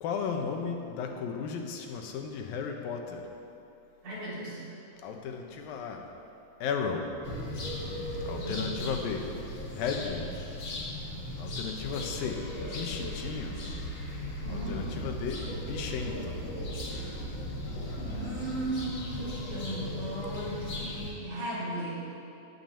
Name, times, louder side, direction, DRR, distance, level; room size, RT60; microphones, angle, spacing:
voice 1, 0.0-3.3 5.0-6.1 6.6-7.1 8.3-9.3 9.7-10.3 11.4-12.4 12.7-13.6 14.5-16.3, left 6 dB, 80° left, 3 dB, 2.8 m, -34 dB
voice 2, 4.0-4.6 8.3-8.7 14.4-14.9 18.0-22.0, right 1 dB, 55° right, -8 dB, 5.1 m, -36 dB
sound 1, 7.2-21.1, left 1 dB, 40° left, 2.0 m, -37 dB
16.5 x 6.0 x 7.6 m, 2.7 s
omnidirectional pair, 4.2 m